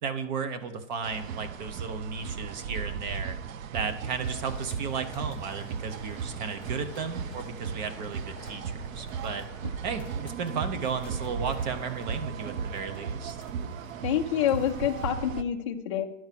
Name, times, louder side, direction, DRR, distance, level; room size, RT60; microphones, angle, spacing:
voice 1, 0.0-3.3 3.7-8.6 8.9-9.4 9.8-13.4, right 5 dB, 35° right, 10 dB, 0.7 m, -34 dB
sound 1, 1.0-15.4, right 6 dB, 75° right, 0.7 m, -36 dB
sound 2, 4.2-15.1, left 3 dB, 5° left, 1.2 m, -51 dB
voice 2, 14.0-16.1, left 10 dB, 25° left, 2 dB, 0.4 m, -27 dB
11.0 x 4.7 x 7.4 m, 0.92 s
supercardioid pair, 170°, 40 cm